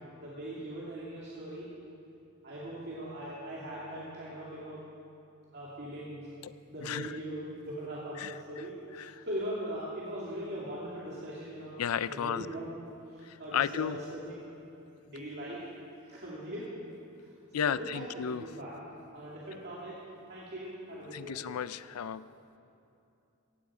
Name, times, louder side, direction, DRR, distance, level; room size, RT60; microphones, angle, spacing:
voice 1, 0.0-1.7 2.4-4.8 5.5-6.3 6.7-12.7 13.1-14.5 15.0-15.6 16.1-16.7 17.5-18.8 19.1-20.0 20.3-21.5, right 1 dB, 50° right, -7 dB, 2.5 m, -40 dB
voice 2, 6.8-7.2 8.2-8.6 8.9-9.2 11.8-12.5 13.2-14.0 17.5-18.4 21.1-22.2, left 8 dB, 85° left, 16 dB, 0.4 m, -34 dB
17.0 x 16.0 x 4.9 m, 2.7 s
head